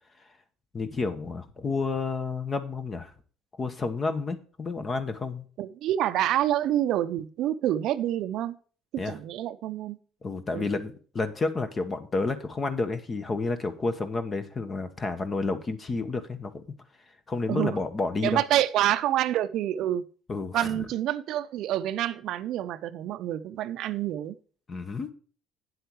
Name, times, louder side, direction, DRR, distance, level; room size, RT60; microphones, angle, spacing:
voice 1, 0.7-3.1 3.6-5.4 9.0-9.2 10.2-16.6 17.3-18.4 20.3-20.8 24.7-25.1, left 3 dB, 30° left, 10 dB, 1.2 m, -30 dB
voice 2, 5.6-8.6 8.9-10.0 10.5-10.7 17.5-17.8 18.2-20.0 20.5-24.4, right 12 dB, 65° right, 12 dB, 0.6 m, -27 dB
8.7 x 7.8 x 4.7 m, 0.41 s
supercardioid pair, 95°, 0 cm